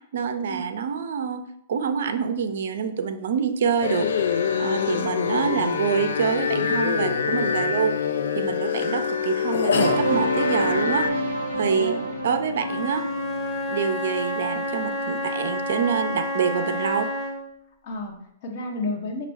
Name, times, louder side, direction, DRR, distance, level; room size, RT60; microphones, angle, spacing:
voice 1, 0.1-1.4 1.7-12.0 12.2-13.0 13.7-17.1, right 6 dB, 65° right, 8 dB, 0.4 m, -26 dB
sound 1, 3.8-11.1, left 6 dB, 70° left, 0.4 m, -25 dB
sound 2, 9.7-14.7, right 1 dB, 90° left, 1.2 m, -28 dB
voice 2, 11.5-12.0 17.8-19.3, left 2 dB, 55° left, 1 dB, 0.9 m, -32 dB
Wind instrument woodwind instrument, 12.5-17.5, left 1 dB, 20° left, 0.9 m, -29 dB
5.1 x 2.4 x 3.3 m, 0.74 s
hypercardioid pair, 115°, 0 cm